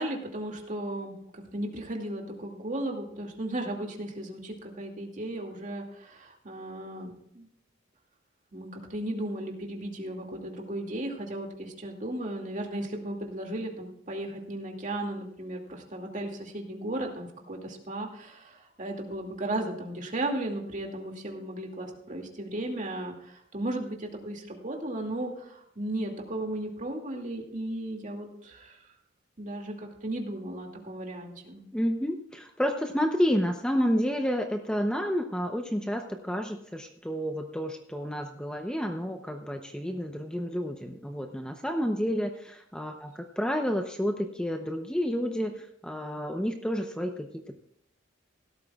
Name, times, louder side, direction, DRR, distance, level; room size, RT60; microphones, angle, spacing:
voice 1, 0.0-7.5 8.5-28.8 29.4-31.6, right 1 dB, 40° right, 1 dB, 2.4 m, -35 dB
voice 2, 31.7-47.6, equal, 5° left, 4 dB, 0.7 m, -30 dB
17.0 x 12.5 x 2.4 m, 0.75 s
head